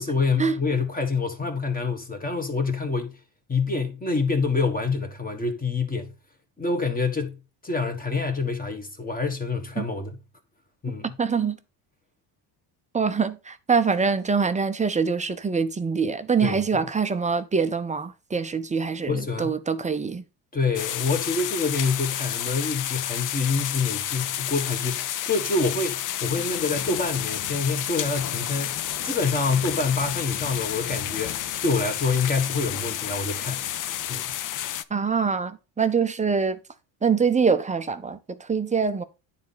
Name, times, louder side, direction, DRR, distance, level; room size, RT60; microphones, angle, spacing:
voice 1, 0.0-3.2 3.5-6.1 6.6-7.4 7.6-10.2 10.8-11.2 16.4-16.8 19.1-19.6 20.5-33.6 34.1-34.3, left 4 dB, 15° left, 1.4 m, -26 dB
voice 2, 11.0-11.6 12.9-20.2 34.9-36.6 37.0-39.0, right 5 dB, 15° right, 0.5 m, -24 dB
sound 1, 20.7-34.8, left 12 dB, 45° left, 0.4 m, -30 dB
9.6 x 4.2 x 4.0 m
cardioid pair, 120°, 49 cm